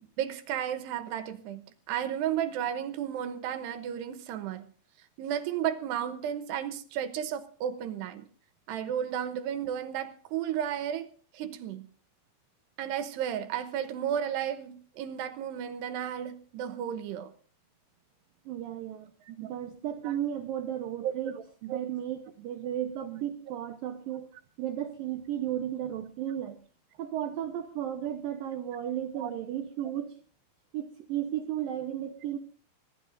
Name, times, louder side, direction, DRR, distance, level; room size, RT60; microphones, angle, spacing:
voice 1, 0.2-4.7 5.2-8.2 8.7-11.9 12.8-17.3 19.3-19.5 20.0-20.2 21.0-21.1 21.7-21.8 29.2-29.3, right 9 dB, 75° right, 10 dB, 2.7 m, -33 dB
voice 2, 18.5-19.1 19.4-24.3 24.6-26.6 27.0-30.1 30.7-32.4, right 11 dB, 90° right, 5 dB, 2.0 m, -34 dB
25.0 x 16.0 x 2.6 m, 0.40 s
omnidirectional pair, 5.6 m